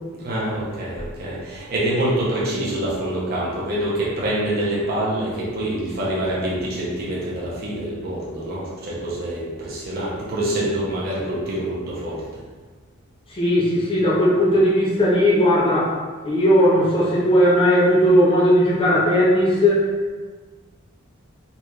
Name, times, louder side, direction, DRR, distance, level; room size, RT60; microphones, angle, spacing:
voice 1, 0.1-12.4, right 1 dB, 45° right, -6 dB, 0.8 m, -26 dB
voice 2, 13.3-16.0 16.2-19.8, equal, 25° left, -6 dB, 0.7 m, -17 dB
4.0 x 2.4 x 3.1 m, 1.4 s
head